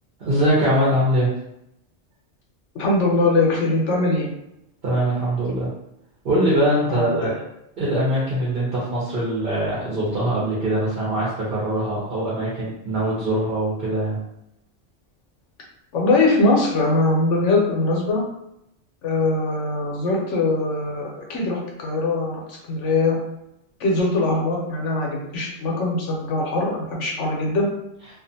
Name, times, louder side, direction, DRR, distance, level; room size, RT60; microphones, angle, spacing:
voice 1, 0.2-1.3 4.8-5.7 6.2-7.3 7.8-14.2, right 1 dB, 55° right, -6 dB, 0.9 m, -22 dB
voice 2, 2.7-4.3 6.9-7.3 15.9-18.2 19.0-23.2 23.8-27.7, left 2 dB, 90° left, -2 dB, 1.1 m, -21 dB
2.5 x 2.4 x 2.7 m, 0.81 s
omnidirectional pair, 1.2 m